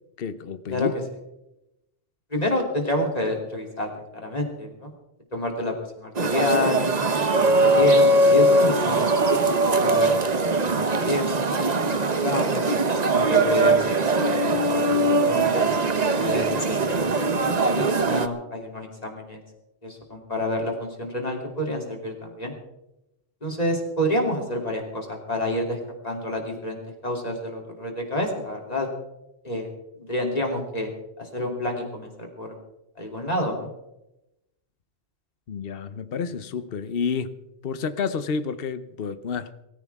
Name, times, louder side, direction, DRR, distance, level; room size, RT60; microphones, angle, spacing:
voice 1, 0.2-0.9 35.5-37.3 37.6-39.5, left 6 dB, 55° left, 1.1 m, -29 dB
voice 2, 2.3-4.9 5.3-7.0 7.3-9.4 9.7-10.1 10.5-12.7 13.1-14.0 14.3-15.7 16.2-19.4 19.8-22.5 23.4-25.8 26.0-28.9 29.4-29.7 30.1-30.9 31.2-32.5 33.0-33.7, left 1 dB, 35° left, 3.3 m, -28 dB
sound 1, 6.2-18.3, right 2 dB, 40° right, 1.0 m, -21 dB
23.0 x 15.0 x 3.6 m
omnidirectional pair, 1.2 m